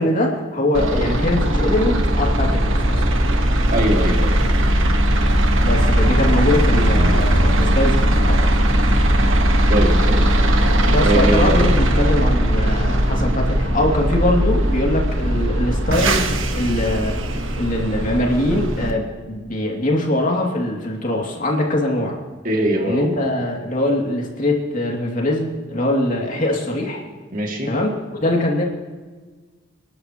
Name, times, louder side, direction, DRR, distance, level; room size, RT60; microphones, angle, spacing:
voice 1, 0.0-3.1 5.6-8.5 10.9-22.2 22.8-27.0 27.7-28.6, left 1 dB, 45° left, -1 dB, 2.7 m, -22 dB
sound 1, 0.7-18.9, right 1 dB, 90° right, 1.5 m, -18 dB
voice 2, 3.7-4.8 9.7-10.3 11.0-11.8 22.4-23.2 27.3-27.7, right 1 dB, 45° right, 1 dB, 2.5 m, -22 dB
26.5 x 12.0 x 3.1 m, 1.3 s
head